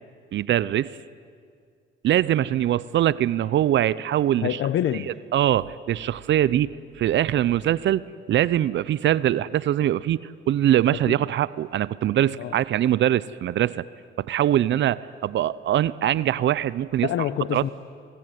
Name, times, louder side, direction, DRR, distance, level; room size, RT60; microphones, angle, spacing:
voice 1, 0.3-1.0 2.0-4.6 5.3-8.0 8.3-13.8 14.2-17.1 17.5-17.6, right 12 dB, 65° right, 19 dB, 0.6 m, -22 dB
voice 2, 4.4-5.1 11.1-11.2 12.4-12.5 17.0-17.7, left 11 dB, 75° left, 12 dB, 1.0 m, -26 dB
29.0 x 21.5 x 9.3 m, 2.1 s
cardioid pair, 90°, 20 cm